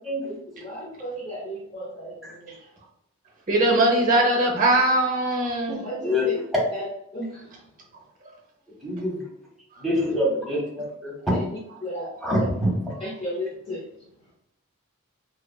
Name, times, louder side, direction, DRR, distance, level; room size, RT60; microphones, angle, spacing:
voice 1, 0.2-2.6 5.7-6.4 6.7-6.9 7.1-7.7 11.4-11.5 11.8-12.5 13.0-14.3, equal, 25° left, -5 dB, 0.5 m, -35 dB
voice 2, 3.5-5.8, right 1 dB, 40° right, 0 dB, 0.7 m, -20 dB
voice 3, 8.8-9.2 9.8-11.4 12.2-12.7, equal, ahead, -6 dB, 0.9 m, -25 dB
2.7 x 2.3 x 2.2 m, 0.79 s
head